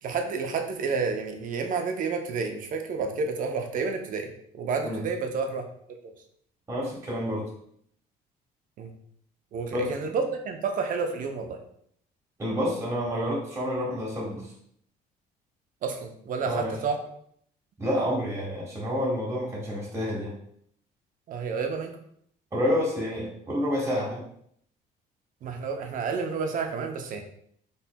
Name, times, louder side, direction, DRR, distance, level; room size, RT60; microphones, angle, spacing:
voice 1, 0.0-4.3 4.5-5.6 8.8-8.9 9.5-11.6 15.8-17.0 21.3-22.0 25.4-27.2, right 5 dB, 50° right, 4 dB, 0.6 m, -30 dB
voice 2, 6.7-7.5 9.7-9.9 12.4-14.5 16.5-16.8 17.8-20.3 22.5-24.2, equal, 15° right, -5 dB, 1.3 m, -29 dB
4.2 x 3.2 x 2.2 m, 0.67 s
cardioid pair, 110°, 17 cm